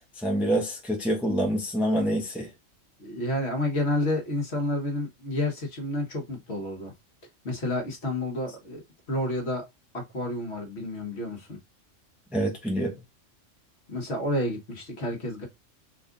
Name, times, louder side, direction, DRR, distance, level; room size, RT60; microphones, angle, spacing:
voice 1, 0.0-2.5 12.3-12.9, right 1 dB, ahead, 0.8 m, -26 dB
voice 2, 3.0-6.9 7.4-8.8 9.1-9.6 9.9-11.6 13.9-15.5, left 1 dB, 60° left, 1.6 m, -30 dB
4.2 x 2.5 x 3.7 m
omnidirectional pair, 1.3 m